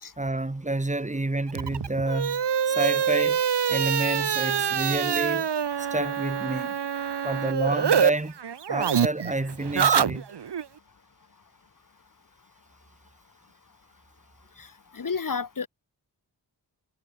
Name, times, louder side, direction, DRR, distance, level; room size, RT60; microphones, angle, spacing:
voice 1, 0.2-3.4 3.7-5.5 5.8-6.8 7.2-8.3 8.7-10.3, right 2 dB, 15° right, 4.2 m, -29 dB
sound 1, 1.5-8.1 8.4-10.6, right 8 dB, 80° right, 2.4 m, -25 dB
voice 2, 14.9-15.7, left 5 dB, 50° left, 4.1 m, -31 dB
wide cardioid pair, 150°, 41 cm